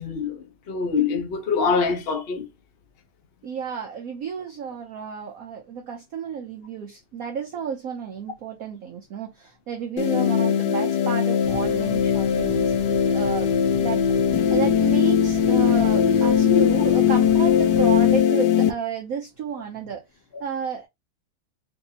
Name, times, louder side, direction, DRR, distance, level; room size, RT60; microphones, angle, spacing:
voice 1, 0.0-2.5, left 5 dB, 90° left, 0.5 m, -25 dB
voice 2, 3.4-13.5 13.8-20.9, right 6 dB, 90° right, 0.7 m, -32 dB
sound 1, 10.0-18.7, left 8 dB, 75° left, 1.1 m, -20 dB
sound 2, 11.4-18.2, right 2 dB, 50° right, 1.2 m, -38 dB
4.0 x 2.6 x 2.8 m
omnidirectional pair, 2.3 m